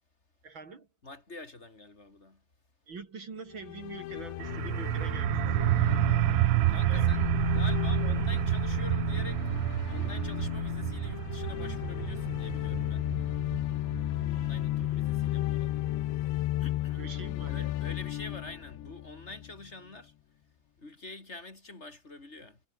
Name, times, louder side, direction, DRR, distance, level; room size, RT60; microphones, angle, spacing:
voice 1, 0.4-0.9 2.9-5.9 6.9-7.1 16.9-17.7, right 4 dB, 35° right, 2.3 m, -44 dB
voice 2, 1.0-2.4 6.7-13.2 14.3-15.9 16.6-17.0 17.4-20.1 20.8-22.6, left 2 dB, 15° left, 2.8 m, -46 dB
sound 1, 3.5-19.6, left 15 dB, 75° left, 3.4 m, -33 dB
sound 2, 4.4-15.9, right 22 dB, 90° right, 3.1 m, -29 dB
omnidirectional pair, 5.5 m